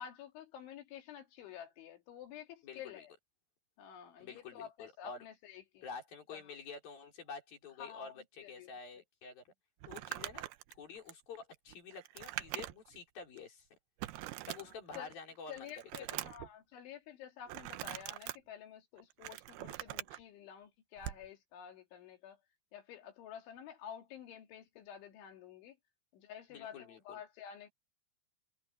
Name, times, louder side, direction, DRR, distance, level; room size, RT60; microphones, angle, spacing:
voice 1, 0.0-3.1 3.8-5.9 6.3-6.4 7.8-8.7 9.9-10.1 14.6-15.1 15.5-22.4 22.7-25.8 26.1-27.7, left 9 dB, 80° left, 4.7 m, -50 dB
voice 2, 2.6-3.0 4.2-5.2 5.8-9.5 9.9-10.4 10.8-13.7 14.5-15.7 16.1-16.3 26.5-27.2, left 5 dB, 50° left, 5.9 m, -49 dB
Crumpling crinkling, 9.8-13.0 13.4-13.5 14.0-15.1 15.5-16.5 17.5-18.4 19.0-20.2 21.0-21.3, right 16 dB, 80° right, 2.2 m, -43 dB
omnidirectional pair, 5.4 m